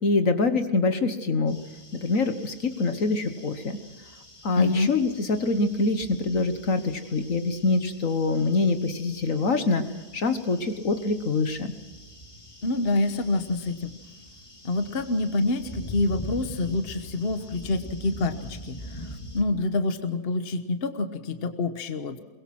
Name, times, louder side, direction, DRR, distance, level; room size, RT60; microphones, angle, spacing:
voice 1, 0.0-1.6 1.9-3.8 4.4-11.7, left 3 dB, 55° left, 9 dB, 1.6 m, -25 dB
sound 1, 1.5-19.4, equal, 20° left, 2.2 m, -44 dB
voice 2, 4.6-4.9 12.6-13.9 14.6-22.2, left 2 dB, 40° left, 8 dB, 1.4 m, -27 dB
23.0 x 21.5 x 6.1 m, 1.3 s
omnidirectional pair, 1.7 m